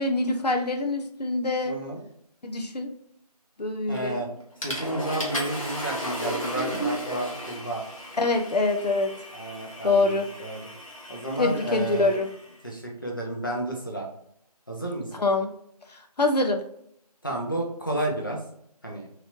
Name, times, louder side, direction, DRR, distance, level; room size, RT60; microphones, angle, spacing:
voice 1, 0.0-1.8 2.4-2.9 3.6-4.2 8.2-9.1 9.8-10.3 11.4-12.3 15.2-15.5 16.2-16.6, left 2 dB, 80° left, 4 dB, 0.7 m, -24 dB
voice 2, 1.6-2.0 3.9-4.3 4.6-7.8 9.3-10.6 11.1-12.1 12.6-14.1 14.7-15.1 17.2-18.4 18.8-19.1, right 1 dB, 30° left, -1 dB, 0.7 m, -31 dB
Water / Toilet flush, 3.9-4.2 4.6-12.5, equal, 55° left, 1.0 m, -35 dB
3.0 x 3.0 x 2.5 m, 0.71 s
figure-of-eight pair, 175°, 20 cm